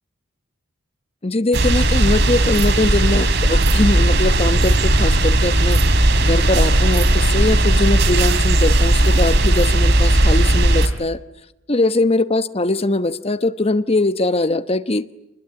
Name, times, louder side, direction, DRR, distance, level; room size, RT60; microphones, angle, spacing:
voice 1, 1.2-5.8 6.2-11.2 11.7-15.0, left 2 dB, 30° left, 12 dB, 1.1 m, -21 dB
sound 1, 1.5-10.9, right 1 dB, 55° right, 3.0 m, -16 dB
27.5 x 21.5 x 8.7 m, 0.90 s
head